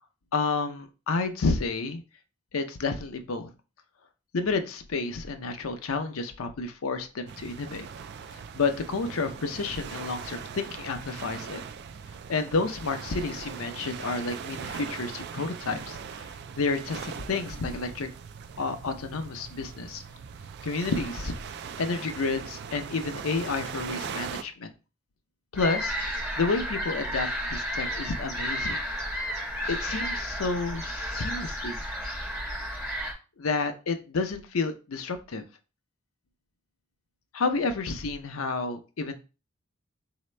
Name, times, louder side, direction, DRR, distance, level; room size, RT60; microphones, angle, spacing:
voice 1, 0.3-2.0 2.5-3.5 4.3-7.9 8.5-11.6 12.3-16.0 16.6-18.1 18.6-20.0 20.6-21.3 21.8-24.7 25.5-26.0 26.4-28.8 29.7-31.8 33.4-35.4 37.3-39.1, left 4 dB, 80° left, 7 dB, 0.6 m, -30 dB
sound 1, 7.3-24.4, right 6 dB, 50° right, 0.3 m, -40 dB
sound 2, 25.5-33.1, equal, 15° right, 1.6 m, -32 dB
4.1 x 2.8 x 3.2 m, 0.31 s
head